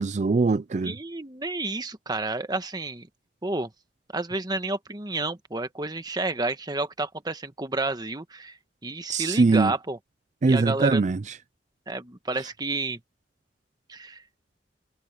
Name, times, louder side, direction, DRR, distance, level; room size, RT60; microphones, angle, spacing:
voice 1, 0.0-1.0 9.1-9.7 10.4-11.4, right 3 dB, 40° right, 0.4 m, -22 dB
voice 2, 0.8-3.1 3.4-3.7 4.1-8.6 8.8-10.0 10.5-11.0 11.9-13.0 13.9-14.2, right 2 dB, 25° right, 1.3 m, -30 dB
head